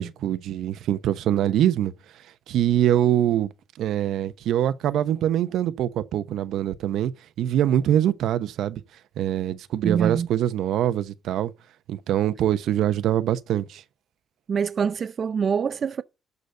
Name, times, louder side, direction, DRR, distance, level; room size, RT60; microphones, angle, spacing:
voice 1, 0.0-1.9 2.5-3.5 3.8-7.1 7.4-8.8 9.2-11.5 11.9-13.8, right 11 dB, 80° right, 0.8 m, -23 dB
voice 2, 9.8-10.3 14.5-16.0, right 7 dB, 50° right, 0.5 m, -25 dB
11.5 x 4.1 x 7.9 m
cardioid pair, 90°, 0 cm